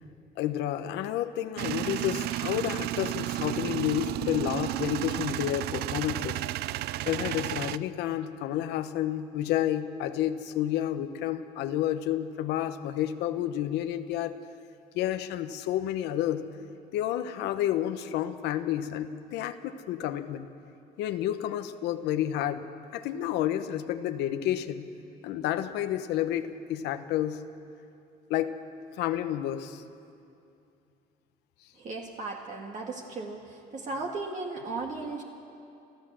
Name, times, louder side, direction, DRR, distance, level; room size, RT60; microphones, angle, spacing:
voice 1, 0.4-6.4 7.1-14.4 14.9-16.4 16.9-20.5 21.0-22.6 22.9-24.9 25.2-27.4 28.3-28.6 29.0-29.8, left 12 dB, 90° left, 9 dB, 1.0 m, -30 dB
Male speech man speaking / Vehicle / Engine starting, 1.6-7.8, right 15 dB, 70° right, 0.4 m, -32 dB
voice 2, 31.8-35.2, right 3 dB, 45° right, 0 dB, 2.0 m, -36 dB
29.5 x 13.5 x 7.6 m, 2.6 s
cardioid pair, 110°, 17 cm